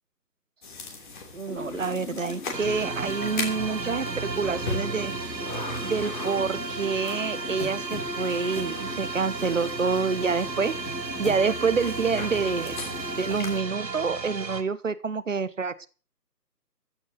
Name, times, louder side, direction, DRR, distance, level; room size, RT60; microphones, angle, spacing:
Content warning, 0.6-13.6, left 3 dB, 30° left, 3.0 m, -39 dB
voice 1, 1.3-5.1 5.8-12.7 13.2-15.9, right 5 dB, 50° right, 16 dB, 1.0 m, -27 dB
sound 1, 1.5-13.3, left 3 dB, 70° left, 2.8 m, -40 dB
sound 2, 2.5-14.6, right 4 dB, 80° right, 1.8 m, -34 dB
15.0 x 6.4 x 7.9 m, 0.37 s
figure-of-eight pair, 160°, 50 cm